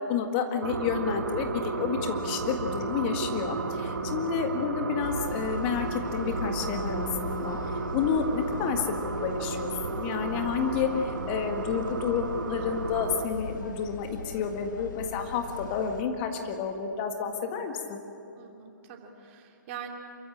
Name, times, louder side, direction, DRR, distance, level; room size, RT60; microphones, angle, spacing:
voice 1, 0.0-7.6 7.9-8.9 9.2-18.0, left 6 dB, 35° left, 5 dB, 1.8 m, -30 dB
sound 1, 0.6-13.3, right 4 dB, 70° right, 1.8 m, -33 dB
sound 2, 5.0-16.0, left 4 dB, 70° left, 1.7 m, -40 dB
voice 2, 18.4-19.9, right 9 dB, 40° right, 2 dB, 3.1 m, -44 dB
27.5 x 15.0 x 8.8 m, 2.7 s
figure-of-eight pair, 130°, 11 cm